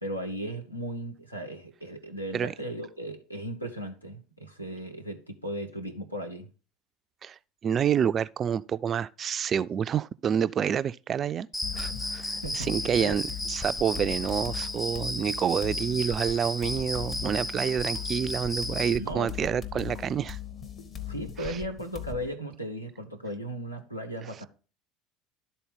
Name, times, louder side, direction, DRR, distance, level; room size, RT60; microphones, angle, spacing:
voice 1, 0.0-6.5 12.4-12.7 13.0-13.2 19.0-19.3 21.1-24.5, equal, 90° left, 1.0 m, -36 dB
voice 2, 7.2-11.5 11.7-20.4 21.4-21.6, right 8 dB, 35° right, 0.3 m, -28 dB
Cricket, 11.5-19.0, left 1 dB, 10° left, 0.8 m, -34 dB
sound 1, 11.6-22.3, left 8 dB, 35° left, 1.2 m, -39 dB
12.0 x 4.1 x 3.8 m
figure-of-eight pair, 65°, 0 cm